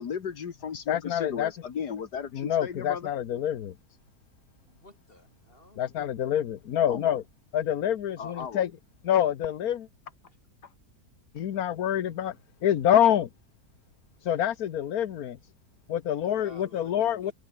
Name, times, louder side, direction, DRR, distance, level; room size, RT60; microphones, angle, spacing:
voice 1, 0.0-3.1 6.9-7.2 8.2-8.6, left 7 dB, 80° left, 2.2 m, -35 dB
voice 2, 0.9-1.5 2.3-3.7 5.8-7.2 7.5-8.7 9.0-9.9 11.3-12.3 12.6-13.3 14.2-15.4 15.9-17.3, left 10 dB, 65° left, 1.5 m, -26 dB
voice 3, 4.7-5.9 8.2-8.3 16.4-17.3, left 1 dB, 35° left, 7.0 m, -53 dB
omnidirectional pair, 1.7 m